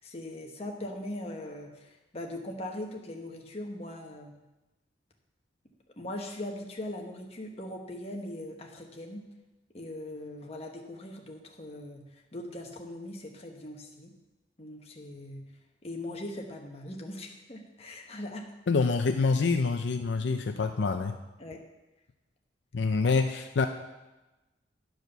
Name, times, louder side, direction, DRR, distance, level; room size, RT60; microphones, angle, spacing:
voice 1, 0.0-4.4 5.9-9.2 9.7-14.1 14.6-15.5 15.8-18.4 21.4-21.6, left 1 dB, 35° left, 1 dB, 1.2 m, -40 dB
voice 2, 18.7-21.1 22.7-23.7, left 4 dB, 75° left, 7 dB, 0.5 m, -26 dB
10.5 x 4.8 x 6.7 m, 1.1 s
head